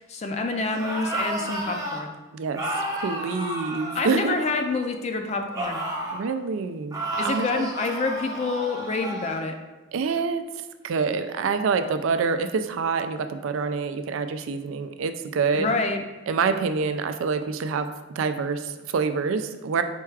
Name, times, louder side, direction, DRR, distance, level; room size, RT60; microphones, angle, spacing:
voice 1, 0.1-2.1 3.9-5.8 7.2-9.5 15.6-16.0, left 3 dB, 35° left, 5 dB, 0.4 m, -27 dB
sound 1, 0.7-2.0 2.6-4.8 5.5-6.3 6.9-9.4, right 1 dB, 20° right, 0.6 m, -32 dB
voice 2, 2.3-4.4 6.1-7.7 9.9-15.7 16.3-19.8, right 5 dB, 75° right, 8 dB, 0.3 m, -27 dB
4.4 x 2.3 x 4.6 m, 1.2 s
head